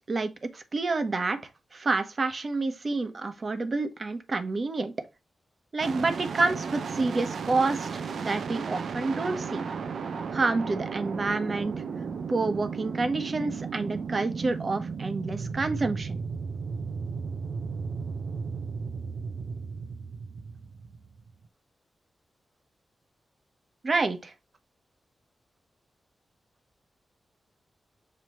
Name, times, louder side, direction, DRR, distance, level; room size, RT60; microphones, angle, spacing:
voice 1, 0.1-4.9 5.7-9.7 10.3-11.7 12.3-16.2 23.8-24.3, right 3 dB, 45° right, 1.1 m, -28 dB
sound 1, 5.8-21.5, right 5 dB, 80° right, 0.6 m, -35 dB
7.4 x 3.0 x 4.3 m
wide cardioid pair, 90°, 0 cm